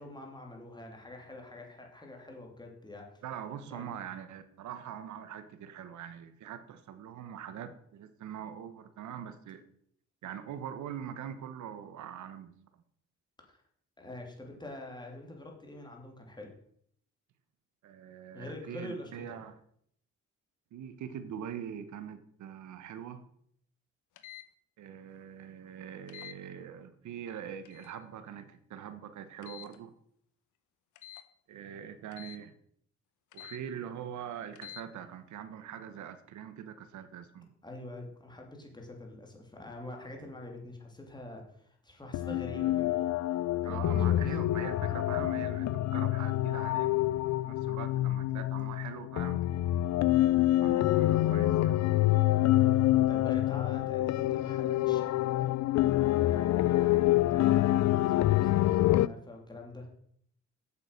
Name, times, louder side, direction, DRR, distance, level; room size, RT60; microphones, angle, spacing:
voice 1, 0.0-3.2 3.7-4.0 13.5-13.6 14.0-16.5 18.3-19.3 37.6-43.1 43.6-44.3 53.1-55.5 55.9-59.9, left 1 dB, 15° left, 1 dB, 3.0 m, -45 dB
voice 2, 3.2-9.6 10.2-12.5 17.8-19.6 20.7-23.3 24.8-29.9 31.5-32.5 33.3-37.5 43.6-49.4 50.6-51.8, right 9 dB, 70° right, 10 dB, 1.1 m, -43 dB
sound 1, 24.2-24.5 26.1-26.4 27.6-28.0 29.4-29.8 31.0-31.3 32.1-32.4 33.3-33.6 34.5-34.8, left 11 dB, 85° left, 0.9 m, -48 dB
sound 2, 42.1-59.1, left 15 dB, 65° left, 0.4 m, -27 dB
8.4 x 7.0 x 6.5 m, 0.67 s
cardioid pair, 90°, 30 cm